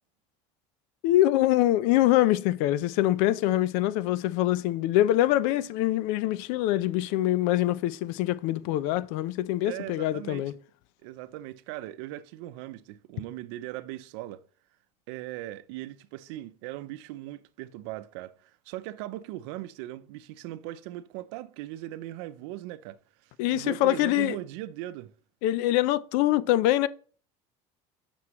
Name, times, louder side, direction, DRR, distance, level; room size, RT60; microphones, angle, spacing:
voice 1, 1.0-10.5 23.4-24.4 25.4-26.9, left 14 dB, 75° left, 0.5 m, -24 dB
voice 2, 9.6-10.5 11.0-14.4 15.1-23.0 23.2-25.1, right 15 dB, 90° right, 0.6 m, -39 dB
9.6 x 6.1 x 3.0 m
cardioid pair, 155°, 14 cm